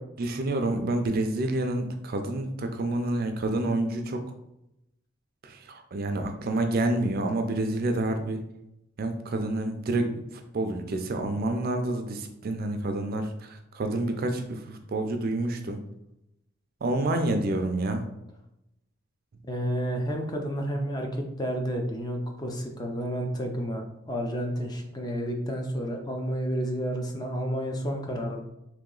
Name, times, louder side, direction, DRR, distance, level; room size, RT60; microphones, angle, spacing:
voice 1, 0.2-4.3 5.4-8.4 9.0-10.2 10.5-15.8 16.8-18.0, right 2 dB, 45° right, 5 dB, 0.4 m, -28 dB
voice 2, 19.5-28.4, equal, 20° left, 2 dB, 0.4 m, -30 dB
3.0 x 2.8 x 3.8 m, 0.86 s
head